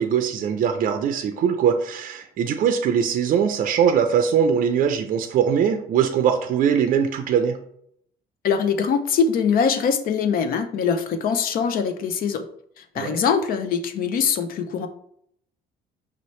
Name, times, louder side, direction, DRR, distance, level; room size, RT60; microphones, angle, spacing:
voice 1, 0.0-7.6 13.0-13.2, right 7 dB, 55° right, 6 dB, 0.5 m, -21 dB
voice 2, 8.4-12.4 12.8-14.9, left 6 dB, 60° left, 9 dB, 0.6 m, -23 dB
5.4 x 2.8 x 3.1 m, 0.69 s
cardioid pair, 110°, 17 cm